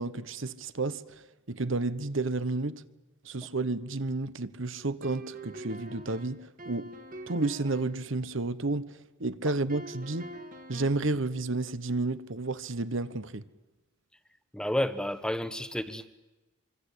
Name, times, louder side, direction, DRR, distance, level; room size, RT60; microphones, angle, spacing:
voice 1, 0.0-2.8 3.2-6.9 7.3-10.3 10.7-13.4, right 3 dB, 60° right, 1.1 m, -31 dB
sound 1, 5.0-8.0 9.7-11.1, right 1 dB, 40° right, 2.2 m, -44 dB
voice 2, 14.5-16.1, left 1 dB, 5° left, 1.0 m, -30 dB
25.0 x 25.0 x 8.4 m
head